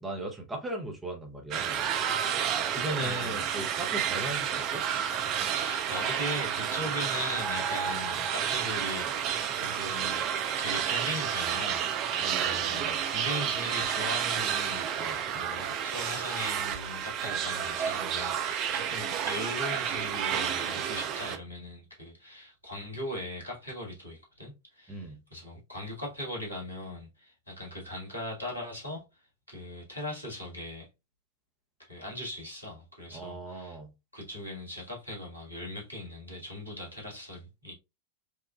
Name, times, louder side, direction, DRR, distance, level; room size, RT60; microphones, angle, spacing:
voice 1, 0.0-1.8 2.7-4.8 12.3-13.0 15.0-15.2 24.9-25.2 33.1-33.9, right 1 dB, 10° right, 0.9 m, -37 dB
sound 1, 1.5-21.4, right 8 dB, 35° right, 0.5 m, -30 dB
voice 2, 3.0-3.4 5.5-11.8 12.1-29.0 29.5-30.9 31.8-33.8 34.1-37.7, left 1 dB, 90° right, 1.6 m, -39 dB
4.7 x 2.4 x 2.3 m
figure-of-eight pair, 90°, 0 cm